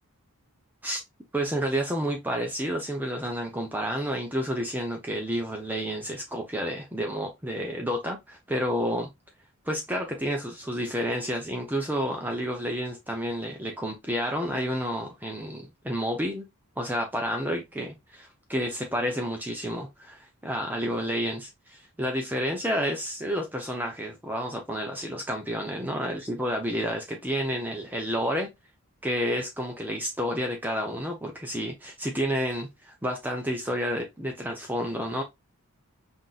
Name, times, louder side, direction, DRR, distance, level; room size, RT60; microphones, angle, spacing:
voice 1, 1.3-9.1 9.7-16.5 16.8-28.5 29.0-35.2, equal, 10° right, 0.6 m, -30 dB
5.7 x 2.6 x 2.3 m
head